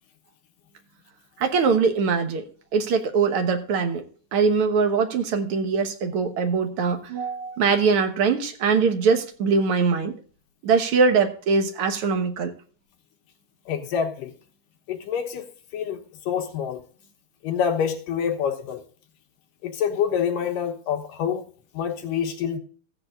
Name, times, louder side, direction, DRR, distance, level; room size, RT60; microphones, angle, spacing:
voice 1, 1.4-2.4 2.7-4.0 4.3-10.1 10.6-12.5, right 5 dB, 65° right, 1.4 m, -22 dB
voice 2, 13.7-14.3 14.9-15.4 15.7-16.0 16.3-16.8 17.4-18.8 19.6-21.4 21.7-22.6, left 7 dB, 75° left, 2.5 m, -26 dB
15.5 x 9.4 x 2.5 m
omnidirectional pair, 4.1 m